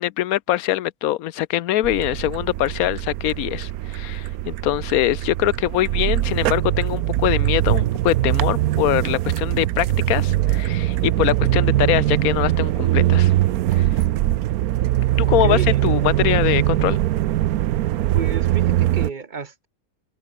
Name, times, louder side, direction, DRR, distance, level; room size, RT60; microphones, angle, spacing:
voice 1, 0.0-13.3 13.7-13.9 15.2-17.0, left 14 dB, 80° left, 1.1 m, -23 dB
sound 1, 1.8-19.1, right 14 dB, 90° right, 1.1 m, -21 dB
voice 2, 15.2-15.8 18.1-19.7, right 5 dB, 35° right, 1.2 m, -31 dB
omnidirectional pair, 1.5 m